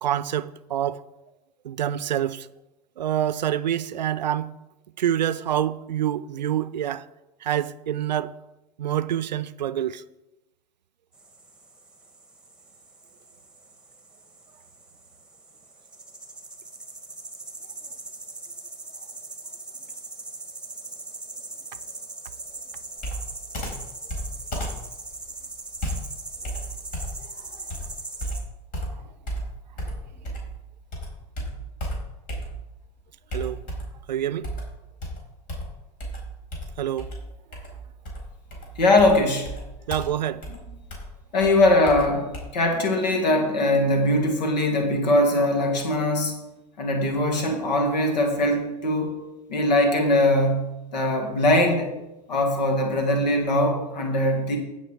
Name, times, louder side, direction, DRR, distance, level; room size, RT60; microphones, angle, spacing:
voice 1, 0.0-1.0 1.6-2.5 3.0-4.5 5.0-7.1 7.4-8.3 8.8-10.0 33.3-33.6 34.1-34.5 36.8-37.1 39.9-40.4, right 11 dB, 85° right, 0.5 m, -26 dB
sound 1, 11.1-28.4, right 2 dB, 5° right, 1.8 m, -41 dB
Computer keyboard, 23.0-30.6 30.9-32.8 33.3-34.0 34.4-42.4, equal, 40° left, 4.3 m, -34 dB
voice 2, 38.8-39.5 41.3-46.3 46.8-49.2 49.5-51.9 52.3-54.6, left 1 dB, 80° left, 2.1 m, -21 dB
15.5 x 5.9 x 4.6 m
hypercardioid pair, 95°, 21 cm